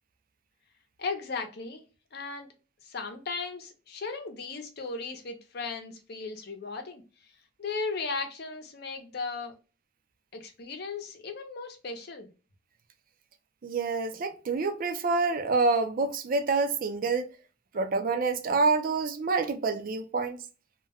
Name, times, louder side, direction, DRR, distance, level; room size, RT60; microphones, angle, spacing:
voice 1, 1.0-1.8 2.1-2.5 2.8-7.0 7.6-9.5 10.3-12.3, left 4 dB, 60° left, 0.6 m, -36 dB
voice 2, 13.6-17.3 17.7-20.4, right 4 dB, 50° right, 0.4 m, -27 dB
2.3 x 2.1 x 3.4 m
head